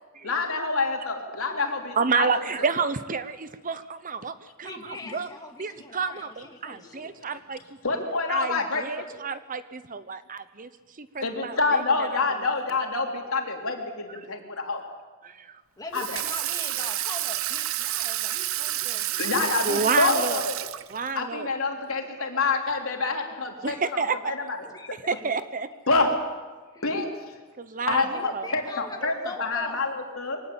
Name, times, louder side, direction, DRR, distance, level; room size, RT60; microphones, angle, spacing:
voice 1, 0.2-2.7 5.0-5.1 7.8-9.1 11.2-14.8 15.9-16.2 19.2-20.6 21.1-24.6 25.9-26.1 26.8-27.1 27.9-30.4, left 3 dB, 70° left, 1 dB, 4.2 m, -27 dB
voice 2, 2.0-5.3 5.6-7.6 8.3-10.7 11.0-12.2 15.2-15.6 19.6-20.4 20.9-21.5 23.6-24.3 25.1-25.7 27.6-28.5, right 5 dB, 40° right, 12 dB, 1.0 m, -30 dB
voice 3, 4.6-7.1 15.8-20.1 24.6-25.2 26.7-26.8 27.9-29.8, left 3 dB, 20° left, 2 dB, 2.3 m, -42 dB
Water tap faucet / Sink (filling or washing), 15.9-21.2, right 14 dB, 65° right, 0.7 m, -29 dB
24.0 x 18.0 x 8.9 m, 1.3 s
head